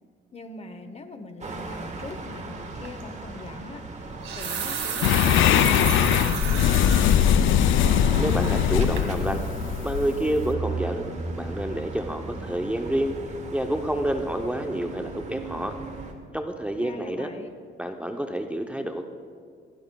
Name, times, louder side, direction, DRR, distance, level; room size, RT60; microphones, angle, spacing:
voice 1, 0.3-3.9 4.3-7.2 16.8-17.5, left 3 dB, 30° left, 9 dB, 0.9 m, -42 dB
sound 1, 1.4-16.1, right 3 dB, 35° right, 1.4 m, -37 dB
sound 2, 2.8-3.0 4.0-7.3 7.8-7.9 8.4-8.7 9.0-9.1, right 6 dB, 85° right, 2.1 m, -32 dB
sound 3, 5.0-10.5, left 10 dB, 80° left, 0.4 m, -21 dB
voice 2, 8.2-9.4 9.8-11.0 11.3-13.2 13.5-15.7 16.3-17.3 17.8-19.0, right 1 dB, 5° right, 4 dB, 0.6 m, -28 dB
16.5 x 15.5 x 2.3 m, 2.1 s
cardioid pair, 90°, 20 cm